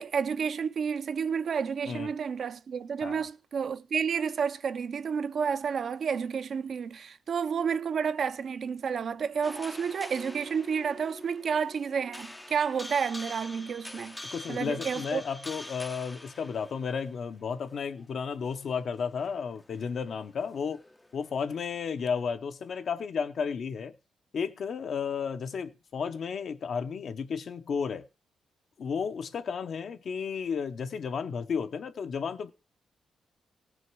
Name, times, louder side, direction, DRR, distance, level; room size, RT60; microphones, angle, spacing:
voice 1, 0.0-14.2 14.5-15.2, right 6 dB, 55° right, 0.5 m, -30 dB
sound 1, 9.4-17.7 18.0-18.2 19.2-21.6 22.1-22.2, left 1 dB, 10° left, 0.5 m, -45 dB
voice 2, 14.3-20.8 21.1-23.9 24.3-28.1 28.8-32.5, left 6 dB, 60° left, 0.8 m, -33 dB
17.0 x 6.3 x 4.6 m
cardioid pair, 115°, 0 cm